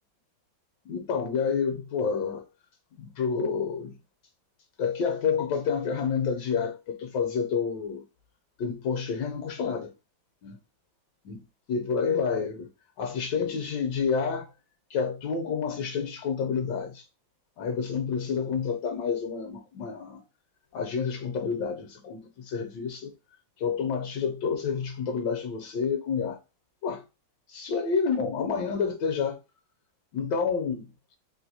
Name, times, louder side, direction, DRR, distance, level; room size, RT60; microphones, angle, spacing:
voice 1, 0.8-2.4 3.0-3.9 4.8-8.0 8.6-9.9 10.4-10.6 11.2-12.7 13.0-14.5 14.9-17.0 17.6-20.2 20.7-23.1 23.6-26.4 26.8-27.0 27.5-29.4 30.1-30.9, left 6 dB, 75° left, 1.2 m, -29 dB
3.1 x 2.5 x 2.7 m
omnidirectional pair, 2.0 m